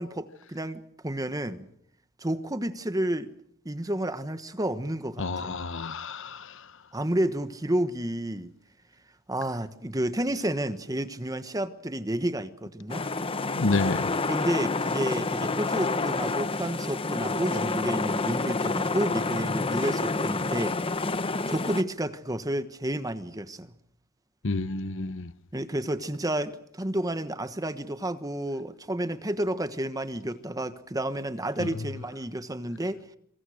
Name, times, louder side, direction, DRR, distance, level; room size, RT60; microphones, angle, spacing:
voice 1, 0.0-1.7 2.2-3.3 3.6-5.5 6.9-8.5 9.3-13.0 14.3-20.8 21.5-23.7 25.5-33.0, right 1 dB, 15° right, 1.3 m, -30 dB
voice 2, 5.2-6.7 13.5-14.1 24.4-25.3 31.6-31.9, left 3 dB, 60° left, 0.9 m, -29 dB
sound 1, 12.9-21.8, left 3 dB, 25° left, 0.9 m, -28 dB
26.5 x 24.5 x 6.4 m
head